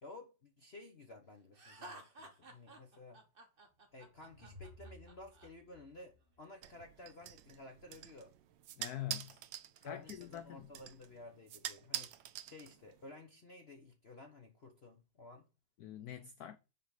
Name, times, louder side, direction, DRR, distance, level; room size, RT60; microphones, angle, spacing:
voice 1, 0.0-3.2 3.9-8.3 9.8-15.5, left 2 dB, 40° left, 1.1 m, -54 dB
Laughter, 1.5-5.5, right 2 dB, 30° right, 1.3 m, -54 dB
sound 1, 3.6-7.0, left 1 dB, 20° left, 3.2 m, -58 dB
sound 2, 6.6-13.1, right 12 dB, 70° right, 1.3 m, -47 dB
voice 2, 8.8-9.4 9.8-10.7 15.8-16.6, left 12 dB, 70° left, 0.9 m, -45 dB
5.7 x 5.0 x 6.5 m
omnidirectional pair, 2.2 m